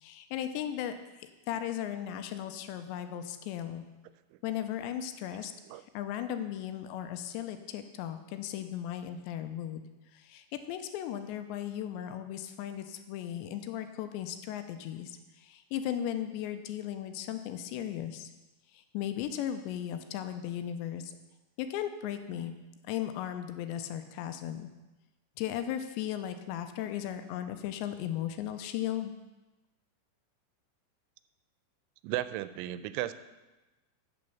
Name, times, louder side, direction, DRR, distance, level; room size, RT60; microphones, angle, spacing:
voice 1, 0.0-0.9 1.2-3.8 4.4-9.8 10.1-18.3 18.7-21.1 21.6-22.5 22.9-24.7 25.4-29.1, left 10 dB, 80° left, 8 dB, 2.7 m, -36 dB
voice 2, 32.0-33.1, right 14 dB, 85° right, 13 dB, 3.0 m, -34 dB
8.9 x 8.4 x 7.0 m, 1.1 s
omnidirectional pair, 5.6 m